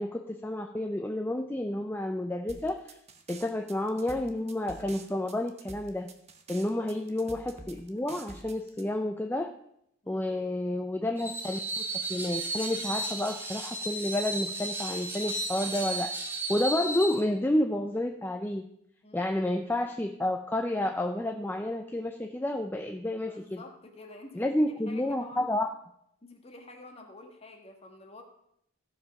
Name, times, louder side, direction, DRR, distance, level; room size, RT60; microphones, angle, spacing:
voice 1, 0.0-3.0 3.3-6.1 6.5-9.5 10.1-18.7 19.1-23.4 24.4-25.7, left 1 dB, 10° left, 4 dB, 0.4 m, -30 dB
sound 1, 2.5-8.8, right 3 dB, 30° right, 0.9 m, -47 dB
Screech, 11.2-17.2, right 2 dB, 10° right, 1.1 m, -34 dB
voice 2, 23.3-24.5 24.9-25.5 26.2-28.2, left 2 dB, 30° left, 3 dB, 1.4 m, -49 dB
15.5 x 5.2 x 5.8 m, 0.75 s
head